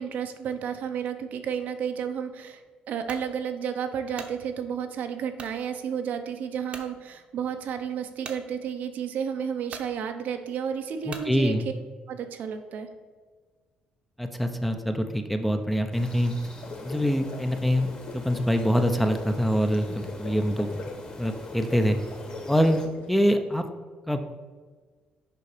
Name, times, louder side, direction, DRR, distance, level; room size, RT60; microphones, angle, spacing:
voice 1, 0.0-2.6 2.9-11.6 12.1-12.9, right 7 dB, 70° right, 7 dB, 0.8 m, -32 dB
sound 1, 3.1-3.3 3.9-4.4 5.4-5.6 6.1-6.2 6.7-6.9 8.2-8.4 9.2-9.3 9.7-9.9 11.1-11.3, right 4 dB, 40° right, 0.9 m, -41 dB
voice 2, 11.1-11.7 14.2-16.3 16.8-20.8 21.2-22.0 22.5-22.8 23.1-23.7 24.1-24.3, equal, 5° left, 6 dB, 0.6 m, -25 dB
sound 2, 15.9-22.9, left 2 dB, 30° left, 1.5 m, -46 dB
sound 3, 16.4-23.2, left 3 dB, 60° left, 1.2 m, -41 dB
6.9 x 4.9 x 4.9 m, 1.5 s
cardioid pair, 110°, 3 cm